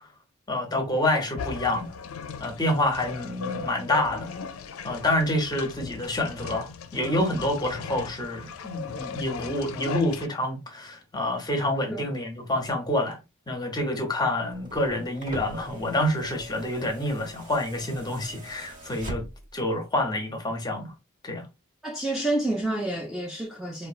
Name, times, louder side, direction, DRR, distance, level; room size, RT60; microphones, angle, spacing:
voice 1, 0.5-1.9 2.4-4.3 4.8-13.2 13.5-19.2 19.5-20.9 21.2-21.5, left 1 dB, 20° left, 0.7 m, -27 dB
sound 1, 1.4-10.3, left 6 dB, 70° left, 0.4 m, -38 dB
sound 2, 14.5-19.6 20.8-20.9, right 1 dB, 35° right, 0.8 m, -41 dB
voice 2, 21.8-23.9, right 1 dB, ahead, 0.3 m, -29 dB
4.1 x 2.3 x 2.3 m
head